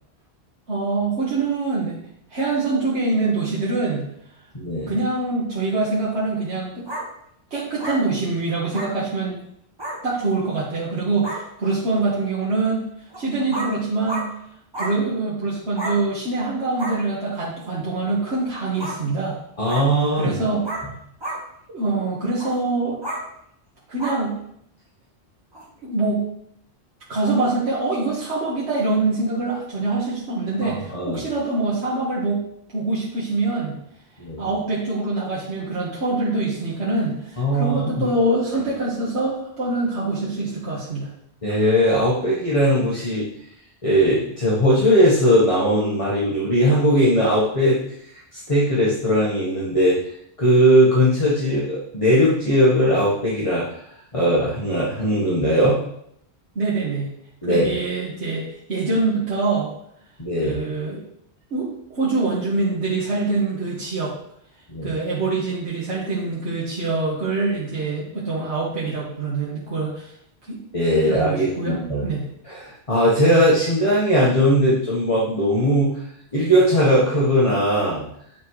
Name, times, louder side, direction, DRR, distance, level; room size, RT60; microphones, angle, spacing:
voice 1, 0.7-2.0 2.3-4.1 4.9-6.8 7.5-9.4 10.0-12.9 13.2-14.3 14.8-19.4 20.2-20.6 21.7-23.0 23.9-24.3 25.8-26.2 27.1-32.4 32.7-33.8 34.4-41.1 56.6-57.1 57.4-59.7 60.4-61.0 61.5-64.1 64.8-70.1 70.4-70.6 71.0-72.2, right 3 dB, 70° right, -6 dB, 1.8 m, -24 dB
voice 2, 4.5-5.0 19.6-20.4 30.6-31.2 34.2-34.4 37.4-38.1 41.4-43.3 43.8-47.8 48.3-50.0 50.4-53.7 54.1-55.8 57.4-57.7 60.2-60.6 64.7-65.0 70.7-72.1 72.4-75.9 76.3-78.0, equal, 30° left, -7 dB, 1.7 m, -19 dB
sound 1, 6.9-7.0 7.8-8.0 8.7-8.9 9.8-10.0 10.8-10.9 11.2-11.4 13.1-13.2 13.5-13.7 14.1-14.3 14.7-14.9 15.7-16.0 16.8-17.0 18.8-19.0 19.7-19.8 20.6-20.9 21.2-21.4 22.4-22.5 23.0-23.2 24.0-24.2 25.5-25.6, right 1 dB, 20° right, 2.1 m, -30 dB
9.1 x 4.4 x 4.9 m, 0.72 s
omnidirectional pair, 1.1 m